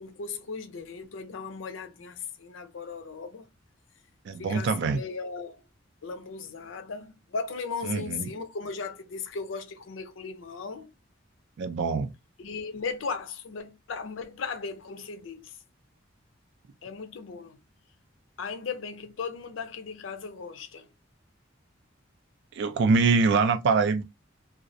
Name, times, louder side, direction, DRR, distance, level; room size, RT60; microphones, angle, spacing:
voice 1, 0.0-3.5 4.4-5.7 6.0-10.9 12.4-15.6 16.8-17.6 18.4-20.9, left 5 dB, 75° left, 0.5 m, -37 dB
voice 2, 4.3-5.0 7.9-8.3 11.6-12.1 22.5-24.0, right 4 dB, 60° right, 0.4 m, -24 dB
2.3 x 2.0 x 2.6 m
head